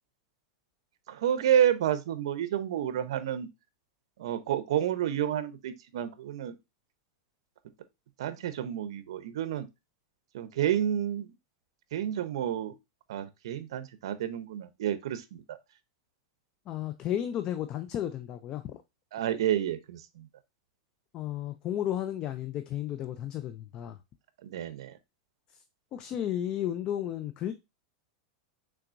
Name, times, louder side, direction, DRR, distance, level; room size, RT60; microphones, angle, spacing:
voice 1, 1.1-3.5 4.2-6.5 8.2-9.7 10.3-11.3 11.9-12.7 13.1-15.6 19.1-20.3 24.4-24.9, right 10 dB, 75° right, 0.7 m, -30 dB
voice 2, 16.7-18.8 21.1-24.0 25.9-27.5, left 11 dB, 30° left, 0.3 m, -33 dB
5.9 x 3.5 x 2.5 m
supercardioid pair, 160°, 3 cm